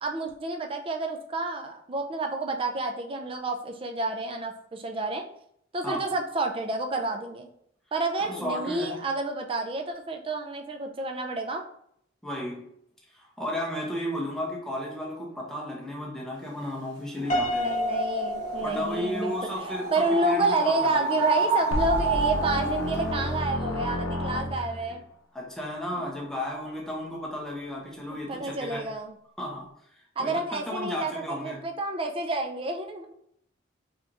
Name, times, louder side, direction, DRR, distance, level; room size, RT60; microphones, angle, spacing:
voice 1, 0.0-5.2 5.7-7.5 7.9-11.6 17.5-19.3 19.9-25.0 25.9-26.1 28.3-29.1 30.2-33.1, right 2 dB, 30° right, 4 dB, 0.4 m, -29 dB
voice 2, 8.2-9.0 12.2-12.7 13.1-17.7 18.6-21.2 25.3-28.8 29.4-29.7 30.2-31.6, left 1 dB, 5° left, -3 dB, 0.7 m, -34 dB
sound 1, 17.2-22.9, right 3 dB, 75° right, 1.0 m, -30 dB
Piano, 17.3-19.5, left 1 dB, 40° left, 0.6 m, -30 dB
sound 2, 21.7-25.0, left 1 dB, 85° left, 0.6 m, -30 dB
4.0 x 3.0 x 2.5 m, 0.71 s
head